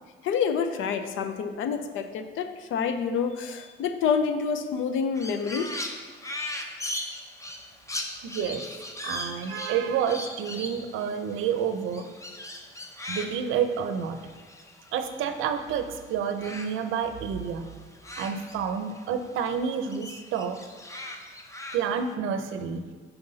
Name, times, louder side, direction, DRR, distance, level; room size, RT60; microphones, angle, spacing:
voice 1, 0.2-5.7, left 6 dB, 80° left, 9 dB, 0.6 m, -28 dB
Crow, 5.1-15.8 16.1-19.1 19.4-22.1, left 1 dB, 15° left, 0.6 m, -39 dB
voice 2, 8.2-8.6 9.0-12.0 13.1-14.2 14.9-17.7 18.2-20.6 21.7-22.8, right 7 dB, 90° right, 8 dB, 0.5 m, -29 dB
5.8 x 5.6 x 3.9 m, 1.5 s
cardioid pair, 90°, 20 cm